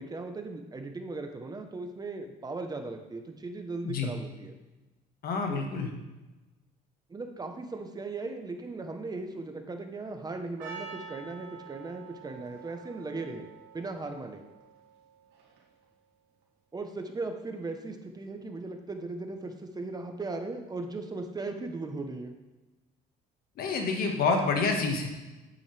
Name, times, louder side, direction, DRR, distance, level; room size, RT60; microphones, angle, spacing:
voice 1, 0.0-4.5 5.5-5.6 7.1-13.5 13.7-14.4 16.7-22.3, right 3 dB, 25° right, 5 dB, 1.0 m, -38 dB
voice 2, 5.2-5.9 23.6-25.1, left 4 dB, 65° left, 3 dB, 1.7 m, -28 dB
Percussion, 10.6-15.8, right 6 dB, 80° right, 2.3 m, -47 dB
9.9 x 8.6 x 3.4 m, 1.1 s
cardioid pair, 110°, 17 cm